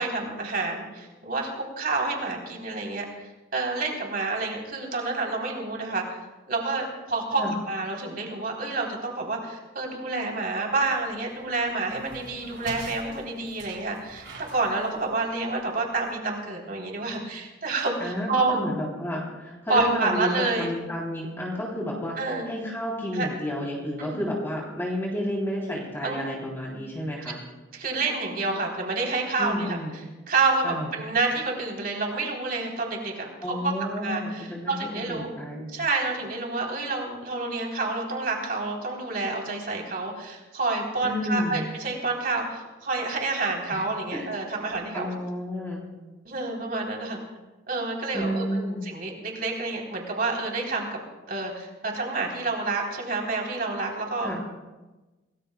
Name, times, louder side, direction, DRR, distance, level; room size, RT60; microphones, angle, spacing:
voice 1, 0.0-3.1 3.5-6.0 6.5-14.3 14.5-18.5 19.7-20.7 22.2-22.5 23.1-23.3 24.0-24.3 26.0-26.2 27.7-29.8 30.3-33.7 34.0-35.3 35.7-45.1 46.2-47.2 47.7-50.9 51.3-54.3, right 3 dB, 50° right, 0 dB, 3.7 m, -28 dB
sound 1, 10.7-16.1, right 3 dB, 70° right, 3.7 m, -45 dB
voice 2, 18.0-27.4 29.4-29.9 30.6-30.9 33.4-35.7 41.0-41.7 43.7-43.8 44.1-44.2 44.7-45.9 48.1-48.8 54.2-54.4, equal, 15° left, -3 dB, 3.3 m, -31 dB
27.0 x 20.0 x 2.3 m, 1.1 s
head